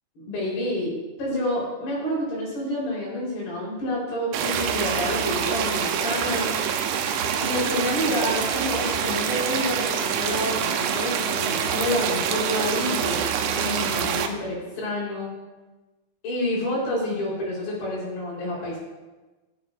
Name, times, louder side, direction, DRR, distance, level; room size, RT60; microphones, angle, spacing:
voice 1, 0.2-0.9 1.2-6.5 7.4-15.3 16.2-18.8, left 1 dB, 60° left, -5 dB, 6.3 m, -28 dB
sound 1, 4.3-14.3, right 7 dB, 90° right, 3.1 m, -26 dB
14.5 x 13.0 x 2.6 m, 1.2 s
omnidirectional pair, 5.4 m